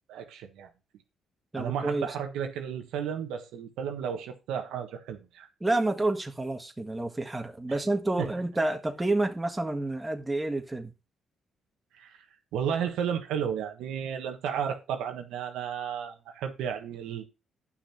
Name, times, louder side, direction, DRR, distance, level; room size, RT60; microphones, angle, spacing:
voice 1, 0.1-0.7 1.6-5.5 8.2-8.3 12.0-12.2 12.5-17.2, right 8 dB, 90° right, 1.4 m, -33 dB
voice 2, 1.5-2.1 5.6-10.9, right 2 dB, 15° right, 1.5 m, -29 dB
10.0 x 6.0 x 4.4 m
cardioid pair, 90°, 0 cm